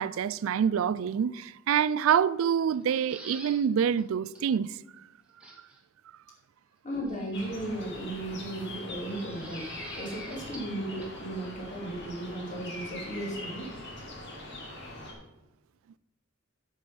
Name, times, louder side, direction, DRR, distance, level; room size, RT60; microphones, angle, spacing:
voice 1, 0.0-4.7, right 8 dB, 75° right, 0.3 m, -26 dB
sound 1, 2.7-3.6 4.0-4.1 4.3-4.4 5.4-5.8 7.1-7.7 9.1-10.7 11.0-11.1, right 1 dB, 5° right, 1.7 m, -47 dB
voice 2, 6.8-13.7, right 1 dB, 35° left, 2.9 m, -36 dB
sound 2, 7.3-15.1, left 1 dB, 55° left, 2.3 m, -42 dB
9.3 x 6.4 x 5.3 m
head